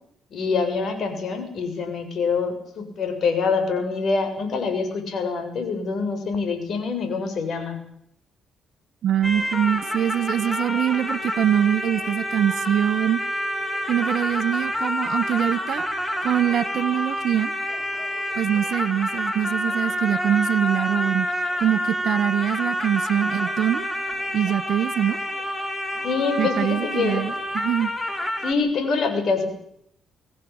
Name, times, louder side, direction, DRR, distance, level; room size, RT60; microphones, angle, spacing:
voice 1, 0.3-7.8 26.0-27.2 28.4-29.5, left 4 dB, 60° left, 7 dB, 7.6 m, -25 dB
voice 2, 9.0-13.2 13.9-15.9 16.2-17.5 18.4-21.3 21.6-23.8 24.3-25.2 26.4-27.9, right 10 dB, 70° right, 15 dB, 1.2 m, -23 dB
sound 1, 9.2-28.5, equal, 10° left, 3.9 m, -28 dB
24.5 x 17.0 x 8.8 m, 0.72 s
cardioid pair, 90°, 0 cm